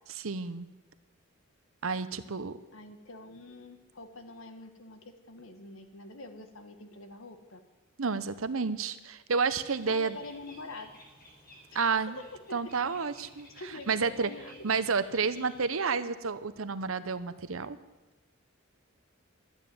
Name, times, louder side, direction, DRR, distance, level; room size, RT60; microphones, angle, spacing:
voice 1, 0.2-0.7 1.8-2.6 8.0-10.2 11.7-12.2 12.5-13.5 13.9-14.3 14.6-17.8, right 5 dB, 75° right, 13 dB, 0.8 m, -30 dB
voice 2, 2.7-7.6 9.8-10.9 11.7-11.8 13.5-14.6, left 2 dB, 70° left, 8 dB, 1.6 m, -45 dB
Bird, 9.6-15.7, equal, 45° left, 4.6 m, -55 dB
12.5 x 9.2 x 9.4 m, 1.1 s
head